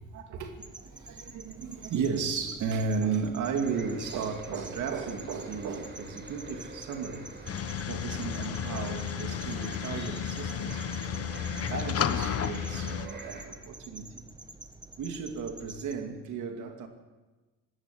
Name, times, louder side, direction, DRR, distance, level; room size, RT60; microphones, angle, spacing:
voice 1, 0.0-7.3 7.9-10.8 11.5-14.2 15.0-16.9, right 5 dB, 80° right, 2.4 m, -34 dB
sound 1, 0.6-15.9, right 2 dB, 15° right, 1.8 m, -48 dB
sound 2, 3.6-13.4, right 2 dB, 35° right, 5.5 m, -46 dB
sound 3, 7.5-13.1, left 8 dB, 50° left, 1.3 m, -32 dB
20.0 x 18.0 x 8.5 m
cardioid pair, 90°, 30 cm